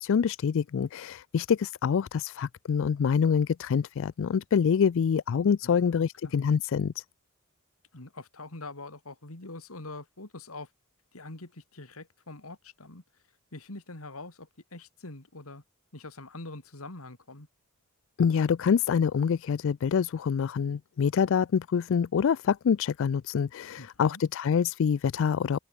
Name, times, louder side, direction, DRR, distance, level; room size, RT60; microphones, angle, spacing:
voice 1, 0.0-7.0 18.2-25.6, left 7 dB, 65° left, 0.4 m, -26 dB
voice 2, 5.6-6.3 7.9-10.7 11.1-13.0 13.5-15.6 15.9-17.5 23.8-24.2, left 2 dB, 80° left, 2.9 m, -44 dB
head